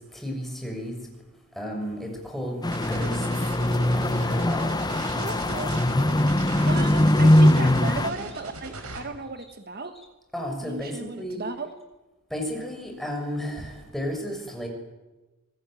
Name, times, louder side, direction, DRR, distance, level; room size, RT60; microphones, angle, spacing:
voice 1, 0.1-1.0 1.6-2.6 2.9-3.2 3.9-4.8 10.3-11.4 12.3-14.7, equal, ahead, 2 dB, 6.3 m, -33 dB
sound 1, 2.6-8.1, left 1 dB, 20° left, 0.9 m, -21 dB
sound 2, 2.7-9.0, right 3 dB, 85° right, 5.4 m, -38 dB
voice 2, 5.1-5.8 6.7-10.0 10.6-11.7, right 3 dB, 45° right, 8 dB, 1.4 m, -35 dB
27.0 x 19.5 x 9.1 m, 1.1 s
head